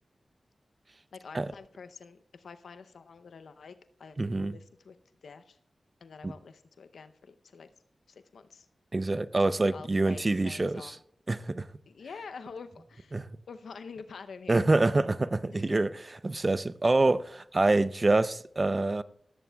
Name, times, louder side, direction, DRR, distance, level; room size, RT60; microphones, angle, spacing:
voice 1, 1.1-5.0 5.2-5.6 6.0-7.7 8.1-8.7 9.7-11.0 11.9-14.7 15.5-15.8, left 5 dB, 90° left, 0.6 m, -47 dB
voice 2, 4.2-4.6 6.2-6.3 8.9-11.0 11.3-11.7 13.1-13.3 14.5-19.0, right 2 dB, 40° right, 0.5 m, -26 dB
16.5 x 14.5 x 2.3 m
cardioid pair, 45°, 0 cm